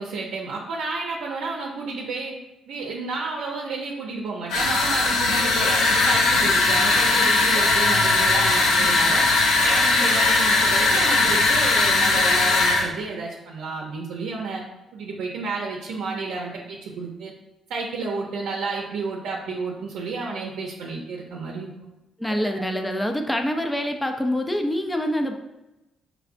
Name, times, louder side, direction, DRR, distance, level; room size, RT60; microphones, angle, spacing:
voice 1, 0.0-2.4 2.7-14.6 14.9-17.3 17.7-21.7 22.2-22.5, right 3 dB, 85° right, -2 dB, 0.6 m, -31 dB
sound 1, 4.5-12.9, left 3 dB, 90° left, 0.7 m, -19 dB
voice 2, 22.2-25.3, equal, 10° left, 5 dB, 0.4 m, -25 dB
4.7 x 3.3 x 2.5 m, 0.99 s
cardioid pair, 90°, 0 cm